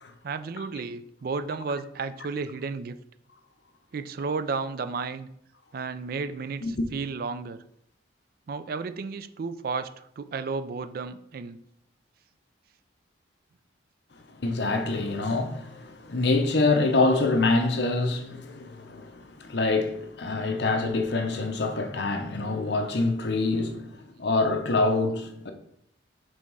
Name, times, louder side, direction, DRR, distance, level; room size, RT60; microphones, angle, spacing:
voice 1, 0.2-2.9 3.9-5.3 5.7-7.6 8.5-11.6, right 4 dB, 50° right, 0.3 m, -33 dB
voice 2, 14.4-23.9 24.2-25.5, left 3 dB, 60° left, 0.7 m, -25 dB
5.1 x 3.5 x 5.3 m
head